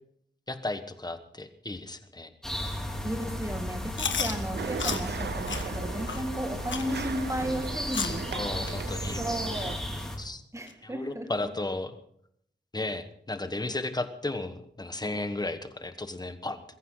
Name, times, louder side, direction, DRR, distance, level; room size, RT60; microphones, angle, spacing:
voice 1, 0.5-2.3 8.3-9.2 10.2-10.4 10.8-11.9 12.7-16.6, left 2 dB, 20° left, 9 dB, 1.3 m, -34 dB
sound 1, 2.4-10.2, left 1 dB, 5° left, 3.9 m, -35 dB
voice 2, 3.0-8.3 9.2-9.8 10.5-11.5, equal, 15° right, 5 dB, 2.1 m, -34 dB
Chewing mastication, 3.9-4.3 4.8-5.0 5.5-5.6 6.1-6.2 6.7-6.9 7.4-7.5 7.9-8.2 8.6-8.7 9.3-9.4 10.0-10.1 10.7-10.8, left 6 dB, 90° left, 1.4 m, -32 dB
sound 2, 4.5-9.8, right 6 dB, 65° right, 0.7 m, -38 dB
22.0 x 14.5 x 4.0 m, 0.69 s
wide cardioid pair, 125°, 19 cm